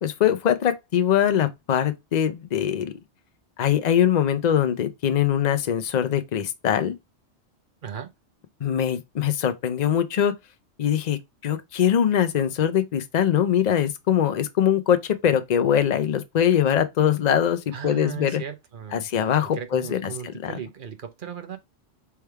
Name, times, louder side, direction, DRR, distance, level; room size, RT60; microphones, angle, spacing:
voice 1, 0.0-2.9 3.6-6.9 8.6-10.3 10.8-18.4 18.9-20.0 20.4-20.5, left 9 dB, 45° left, 0.6 m, -22 dB
voice 2, 17.7-19.1 19.4-21.6, right 8 dB, 50° right, 0.8 m, -37 dB
3.4 x 3.4 x 4.6 m
omnidirectional pair, 1.2 m